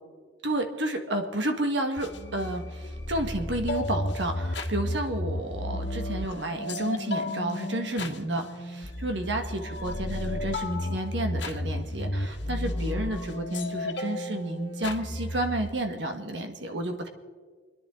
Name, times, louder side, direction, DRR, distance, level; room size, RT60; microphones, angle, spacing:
voice 1, 0.4-17.1, right 1 dB, 80° right, 5 dB, 1.6 m, -31 dB
sound 1, 2.0-15.7, left 1 dB, 75° left, 1.5 m, -33 dB
29.0 x 10.5 x 3.8 m, 1.5 s
head